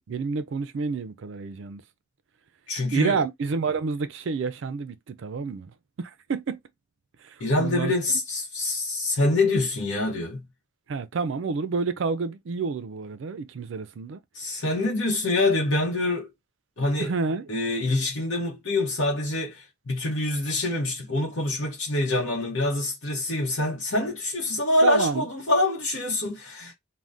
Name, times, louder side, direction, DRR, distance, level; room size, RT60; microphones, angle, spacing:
voice 1, 0.1-1.8 2.9-5.7 6.0-6.6 7.2-8.0 10.9-14.2 14.5-14.6 17.0-17.5 24.8-25.3 26.6-26.7, right 4 dB, 65° right, 0.4 m, -29 dB
voice 2, 2.7-3.2 7.4-10.4 14.3-16.3 16.8-17.1 17.5-26.7, left 2 dB, 70° left, 0.8 m, -25 dB
2.6 x 2.1 x 3.3 m
head